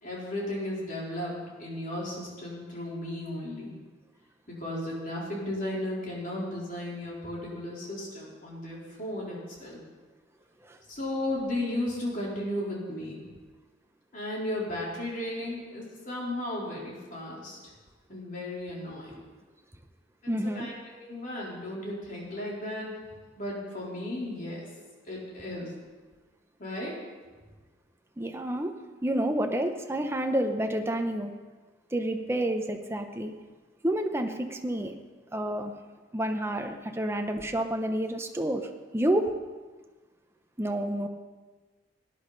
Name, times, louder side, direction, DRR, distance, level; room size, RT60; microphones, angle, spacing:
voice 1, 0.0-3.7 4.5-9.8 10.9-13.2 14.1-17.7 18.1-19.2 20.4-22.9 23.4-24.7 25.1-25.7 26.6-26.9, left 1 dB, 45° left, -4 dB, 3.7 m, -35 dB
voice 2, 20.3-20.7 28.2-28.7 29.0-31.3 31.9-33.3 33.8-35.0 35.3-35.7 36.1-39.3 40.6-41.1, right 1 dB, 15° right, 5 dB, 0.8 m, -29 dB
17.5 x 10.5 x 4.0 m, 1.3 s
head